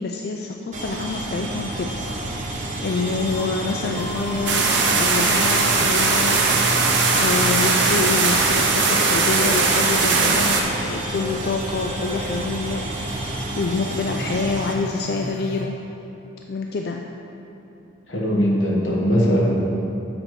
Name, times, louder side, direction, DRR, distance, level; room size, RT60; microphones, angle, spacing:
voice 1, 0.0-15.8 16.5-17.1, left 4 dB, 55° left, 2 dB, 0.3 m, -27 dB
sound 1, 0.7-14.7, right 1 dB, 40° right, 0.7 m, -30 dB
sound 2, 3.3-3.4 3.9-5.8 6.3-7.5 8.0-8.4 8.9-10.7 11.2-12.4 12.9-13.3 13.8-15.6, left 1 dB, 30° left, 1.1 m, -36 dB
sound 3, 4.5-10.6, right 4 dB, 70° right, 0.9 m, -19 dB
voice 2, 18.1-19.5, equal, 85° left, -3 dB, 1.4 m, -20 dB
7.6 x 4.6 x 5.8 m, 2.9 s
head